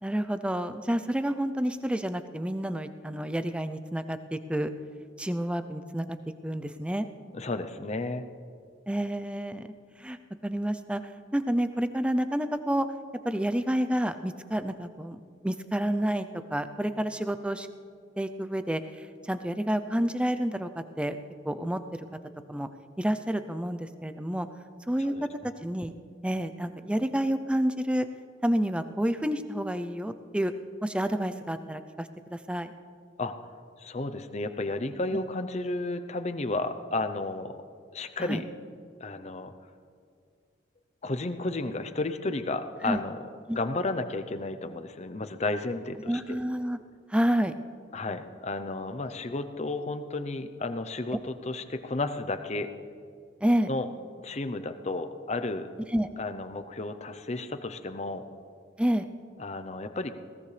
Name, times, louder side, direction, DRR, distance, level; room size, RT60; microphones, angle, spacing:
voice 1, 0.0-4.7 5.2-6.2 6.4-7.1 8.9-9.7 10.0-11.0 11.3-12.9 13.2-17.7 18.2-21.2 21.4-22.1 22.5-22.7 23.0-24.5 24.9-25.1 25.6-25.9 26.2-28.1 28.4-30.5 30.8-32.7 38.2-38.4 42.8-43.0 43.5-43.6 46.1-46.8 47.1-47.5 53.4-53.7 55.9-56.1 58.8-59.0, equal, 5° right, 10 dB, 0.5 m, -29 dB
voice 2, 7.3-8.2 25.1-25.3 33.2-33.3 33.8-37.6 37.9-38.4 39.0-39.5 41.0-43.2 43.5-46.4 47.9-52.7 53.7-53.9 54.2-55.7 56.2-58.2 59.4-60.1, left 2 dB, 35° left, 9 dB, 0.7 m, -32 dB
21.0 x 18.0 x 3.3 m, 2.3 s
head